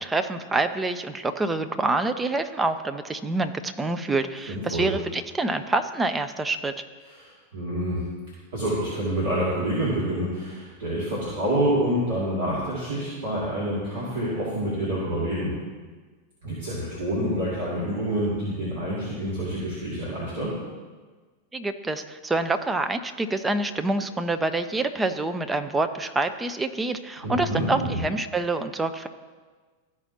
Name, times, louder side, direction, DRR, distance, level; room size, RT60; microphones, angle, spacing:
voice 1, 0.0-6.7 21.5-29.1, right 2 dB, 10° right, 8 dB, 0.5 m, -26 dB
voice 2, 4.5-4.9 7.0-8.1 8.5-15.5 16.4-20.5 27.2-28.0, right 1 dB, 60° right, -8 dB, 2.1 m, -27 dB
13.5 x 4.9 x 2.8 m, 1.4 s
figure-of-eight pair, 90°, 0 cm